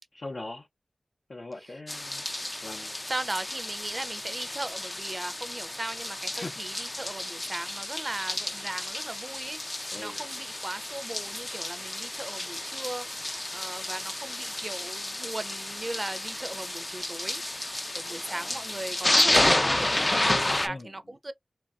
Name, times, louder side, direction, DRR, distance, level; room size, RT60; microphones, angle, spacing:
voice 1, 0.1-0.7 1.3-2.2 2.6-3.0 6.3-6.5 9.9-10.2 18.3-18.6 20.6-20.9, left 2 dB, 70° left, 0.6 m, -40 dB
sound 1, 1.9-20.7, left 1 dB, 30° left, 0.3 m, -31 dB
voice 2, 2.8-17.4 17.9-21.3, right 2 dB, 40° right, 0.4 m, -38 dB
3.0 x 2.3 x 2.3 m
wide cardioid pair, 50°, 0 cm